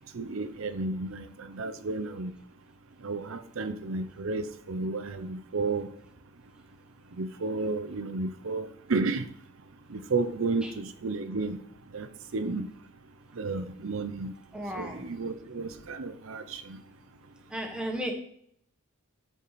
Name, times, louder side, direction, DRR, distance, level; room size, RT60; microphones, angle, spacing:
voice 1, 0.1-2.3 3.0-5.9 7.2-9.2 9.9-11.6 11.9-12.1 12.3-12.7 13.4-14.3 14.7-16.8, right 3 dB, 65° right, 9 dB, 0.6 m, -32 dB
voice 2, 14.5-15.0 17.5-18.1, equal, 5° right, 2 dB, 1.3 m, -34 dB
14.0 x 4.8 x 4.1 m, 0.66 s
head